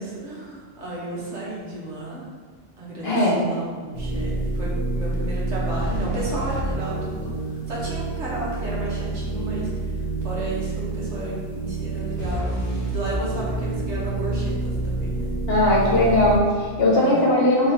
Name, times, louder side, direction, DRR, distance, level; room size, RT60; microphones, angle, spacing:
voice 1, 0.0-2.2 2.8-15.3 17.0-17.3, right 2 dB, 65° right, -6 dB, 1.4 m, -33 dB
voice 2, 3.0-3.4 15.5-17.7, left 1 dB, 55° left, -5 dB, 1.2 m, -19 dB
sound 1, 3.9-16.4, right 2 dB, 35° left, 1.4 m, -28 dB
3.7 x 3.3 x 4.4 m, 1.5 s
omnidirectional pair, 1.3 m